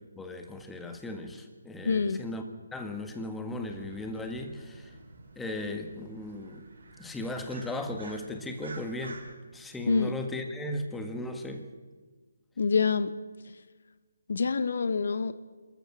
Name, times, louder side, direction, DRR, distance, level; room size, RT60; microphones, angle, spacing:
voice 1, 0.1-2.4 2.7-4.9 5.3-6.7 7.0-9.2 9.5-11.7, left 1 dB, 5° left, 5 dB, 1.7 m, -36 dB
voice 2, 1.8-2.2 9.9-10.1 12.6-13.1 14.3-15.3, left 5 dB, 65° left, 13 dB, 1.1 m, -26 dB
sound 1, 3.6-9.3, right 3 dB, 65° right, 5.3 m, -50 dB
26.0 x 14.0 x 7.7 m, 1.4 s
figure-of-eight pair, 155°, 0 cm